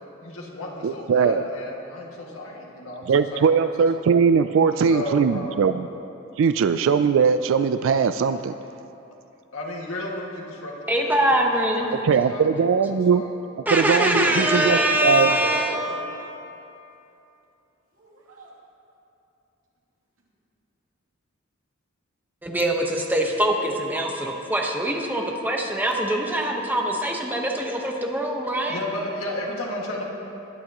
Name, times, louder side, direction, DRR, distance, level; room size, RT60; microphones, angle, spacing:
voice 1, 0.2-3.7 4.9-5.9 9.5-12.7 13.1-13.3 13.8-14.0 28.7-30.0, left 1 dB, 85° left, -2 dB, 2.0 m, -34 dB
voice 2, 0.8-1.5 3.1-5.9 6.4-8.5 12.0-13.2 13.7-15.4, right 6 dB, 65° right, 11 dB, 0.3 m, -20 dB
voice 3, 10.9-11.9 13.7-15.8 22.4-28.8, right 1 dB, 10° right, 0 dB, 1.1 m, -23 dB
voice 4, 14.0-14.9 15.3-16.4 18.0-18.5, right 1 dB, 85° right, -4 dB, 2.7 m, -33 dB
21.0 x 10.5 x 3.0 m, 2.8 s
head